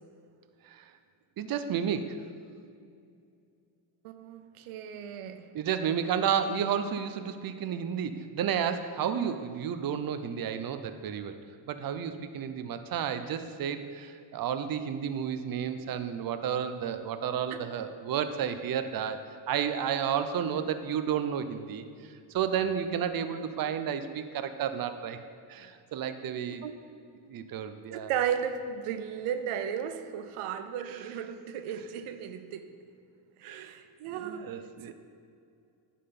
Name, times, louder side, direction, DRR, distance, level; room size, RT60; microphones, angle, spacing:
voice 1, 1.4-2.2 5.5-11.4 11.7-19.2 19.5-25.2 25.5-26.6 27.3-28.1 30.8-31.1 33.4-33.8 34.1-34.9, right 8 dB, 45° right, 10 dB, 0.6 m, -32 dB
voice 2, 4.0-5.5 26.6-26.8 27.9-32.7 33.4-34.6 34.9-35.0, right 8 dB, 90° right, 9 dB, 0.6 m, -35 dB
10.0 x 3.7 x 5.8 m, 2.4 s
cardioid pair, 85°, 49 cm